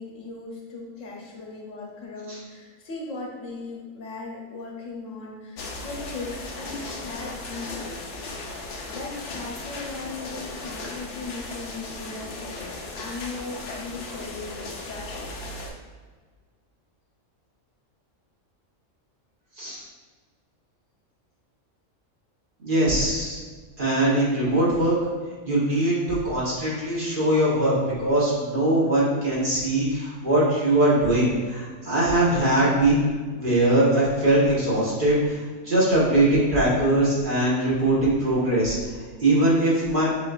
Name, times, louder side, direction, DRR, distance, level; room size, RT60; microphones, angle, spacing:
voice 1, 0.0-8.0 8.3-8.4 8.9-15.4, left 3 dB, 75° left, -3 dB, 1.3 m, -38 dB
sound 1, 5.6-15.7, left 2 dB, 60° left, 0.8 m, -37 dB
voice 2, 22.6-23.4 23.8-24.9 25.4-33.1 33.3-38.7 39.2-40.1, right 1 dB, 40° right, -8 dB, 1.5 m, -21 dB
6.7 x 2.9 x 2.5 m, 1.5 s
omnidirectional pair, 1.3 m